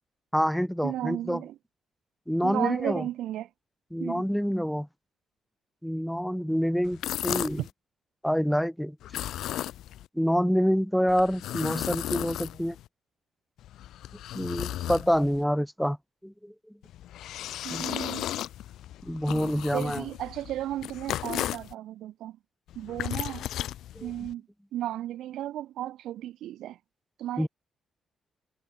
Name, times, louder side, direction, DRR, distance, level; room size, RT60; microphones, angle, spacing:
voice 1, 0.3-1.4 2.3-3.1 3.9-4.9 5.8-7.6 8.2-9.0 10.1-12.8 14.3-16.0 16.2-16.5 17.7-17.9 19.0-20.1 24.0-24.1 27.4-27.5, equal, ahead, 3.7 m, -27 dB
voice 2, 0.8-1.6 2.4-3.5 4.0-4.2 7.6-7.7 17.6-18.3 19.7-22.4 22.8-23.4 24.0-24.4 24.7-26.8 27.2-27.5, right 13 dB, 90° right, 3.9 m, -34 dB
sound 1, 6.8-7.7 9.0-10.1 11.1-12.9 13.6-15.4 16.8-21.7 22.7-24.3, left 13 dB, 85° left, 2.2 m, -35 dB
cardioid pair, 180°, 0 cm